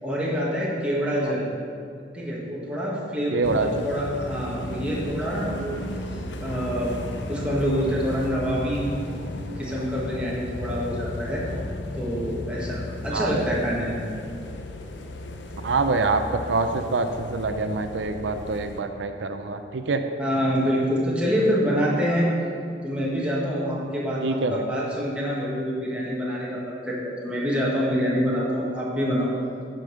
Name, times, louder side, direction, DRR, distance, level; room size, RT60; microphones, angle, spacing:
voice 1, 0.0-1.5 2.1-5.8 6.4-6.9 7.3-8.9 9.5-11.4 12.0-14.1 20.2-22.3 22.8-29.3, equal, 5° right, -5 dB, 1.6 m, -26 dB
voice 2, 3.3-3.8 6.1-6.2 13.1-13.4 15.6-20.0 24.2-24.6, right 3 dB, 85° right, 7 dB, 0.5 m, -25 dB
sound 1, 3.4-18.8, left 2 dB, 85° left, 0.7 m, -35 dB
9.3 x 5.3 x 6.4 m, 2.3 s
head